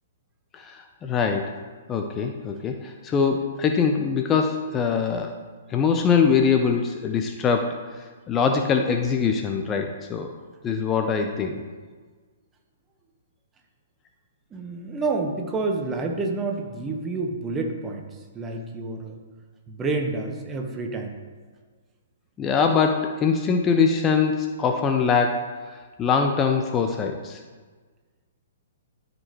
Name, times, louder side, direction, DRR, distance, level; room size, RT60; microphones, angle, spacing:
voice 1, 0.5-1.5 1.9-5.3 5.7-10.3 10.6-11.6 22.4-25.7 26.0-27.4, left 6 dB, 20° left, 4 dB, 0.6 m, -23 dB
voice 2, 14.5-18.1 18.3-19.2 19.7-21.2, right 3 dB, 15° right, 3 dB, 1.1 m, -29 dB
13.0 x 5.2 x 3.0 m, 1.4 s
figure-of-eight pair, 120°, 0 cm